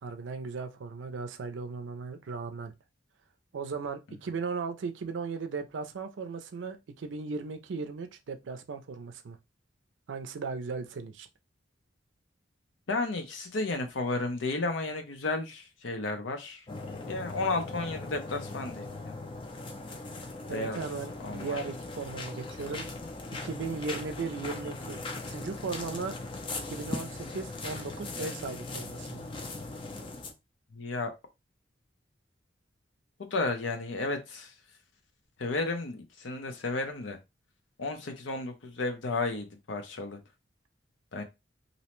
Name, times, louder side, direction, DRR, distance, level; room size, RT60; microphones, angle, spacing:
voice 1, 0.0-2.7 3.5-9.4 10.1-11.3 20.5-22.9 23.4-25.0 25.3-26.2 26.7-29.2, right 4 dB, 80° right, 0.4 m, -37 dB
voice 2, 12.9-19.1 20.5-20.8 21.2-21.6 30.7-31.1 33.2-34.5 35.4-37.2 37.8-40.2 41.1-41.2, left 3 dB, 90° left, 0.7 m, -33 dB
sound 1, 16.7-30.3, left 2 dB, 25° left, 0.4 m, -39 dB
2.6 x 2.1 x 2.9 m
head